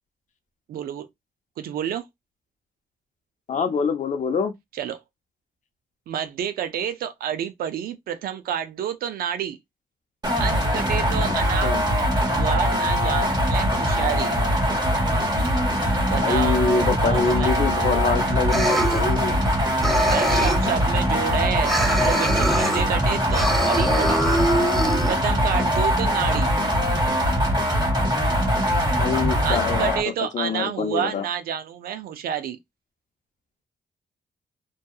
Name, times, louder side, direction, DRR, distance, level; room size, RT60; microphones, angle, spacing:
voice 1, 0.7-1.1 1.6-2.1 4.7-5.0 6.1-9.6 10.4-11.7 12.3-14.3 16.1-16.6 17.0-17.5 20.1-24.3 25.1-26.5 29.4-32.6, right 9 dB, 85° right, 0.4 m, -29 dB
voice 2, 3.5-4.5 11.6-11.8 16.1-19.4 25.5-25.6 29.0-29.9 30.3-31.2, left 5 dB, 55° left, 0.6 m, -25 dB
sound 1, 10.2-30.0, equal, 25° right, 1.2 m, -22 dB
sound 2, 18.5-19.5 19.8-20.8 21.7-22.8 23.3-25.1, equal, ahead, 0.6 m, -24 dB
2.7 x 2.3 x 2.3 m
cardioid pair, 90°, 15 cm